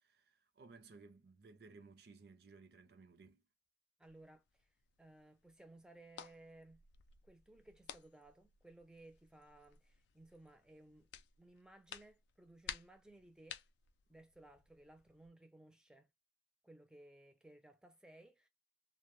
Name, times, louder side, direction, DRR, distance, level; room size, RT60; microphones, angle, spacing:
voice 1, 0.0-3.4, right 4 dB, 65° right, 0.5 m, -59 dB
sound 1, 4.0-15.3, left 9 dB, 80° left, 0.3 m, -56 dB
voice 2, 4.0-4.7 5.0-6.8 7.2-11.1 11.4-13.6 14.1-16.1 16.6-18.5, right 2 dB, 5° right, 0.4 m, -60 dB
2.1 x 2.1 x 2.9 m
head